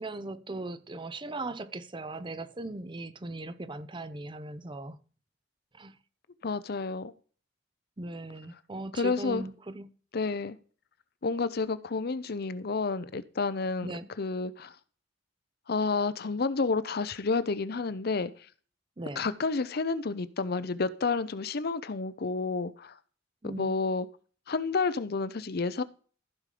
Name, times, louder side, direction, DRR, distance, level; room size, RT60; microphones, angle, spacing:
voice 1, 0.0-5.0 5.7-6.0 8.0-9.9 13.8-14.1 19.0-19.3 23.4-23.8, right 2 dB, 25° right, 0.7 m, -38 dB
voice 2, 6.4-7.1 9.0-9.4 10.1-10.6 11.2-13.9 14.2-14.7 15.7-18.3 19.2-22.9 23.4-24.1 24.5-25.8, left 4 dB, 55° left, 0.7 m, -30 dB
14.5 x 5.3 x 5.0 m
head